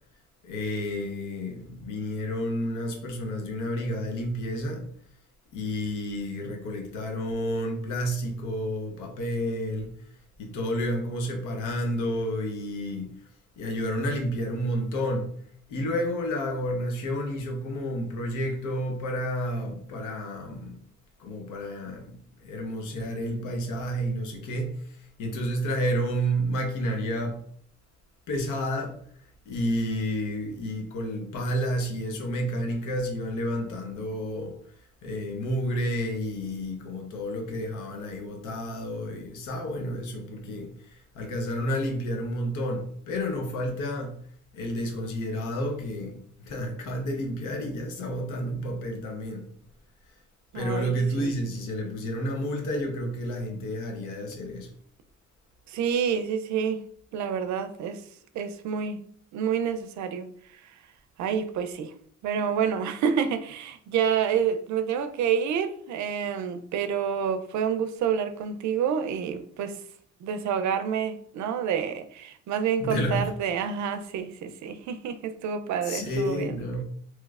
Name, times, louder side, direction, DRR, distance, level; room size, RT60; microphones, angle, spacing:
voice 1, 0.4-4.9 5.5-9.9 10.4-13.1 13.6-15.3 15.7-20.8 21.2-27.4 28.3-29.0 29.5-34.6 35.0-44.2 44.5-49.5 50.5-54.7 72.8-73.3 75.8-76.8, equal, 90° left, 0.8 m, -30 dB
voice 2, 50.5-51.3 55.7-56.8 57.1-58.0 58.3-59.0 59.3-60.3 61.2-61.9 62.2-69.8 70.2-76.6, right 7 dB, 70° right, 0.5 m, -28 dB
3.1 x 3.0 x 2.3 m
cardioid pair, 90°, 30 cm